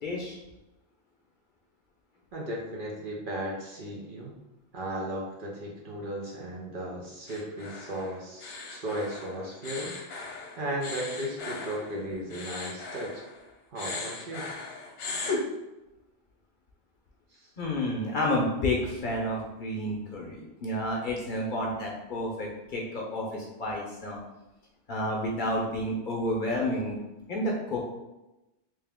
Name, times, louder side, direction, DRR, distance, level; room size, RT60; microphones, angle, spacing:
voice 1, 0.0-0.4 17.6-24.2 24.9-27.0 27.3-27.8, left 1 dB, 50° left, -2 dB, 0.8 m, -30 dB
voice 2, 2.3-4.4 4.7-9.9 10.6-13.2 13.7-14.5 17.3-17.5, right 1 dB, 55° right, -2 dB, 0.8 m, -35 dB
sound 1, 7.3-13.5 13.8-15.4, left 4 dB, 75° left, 1.0 m, -38 dB
3.3 x 2.8 x 3.5 m, 0.98 s
omnidirectional pair, 1.2 m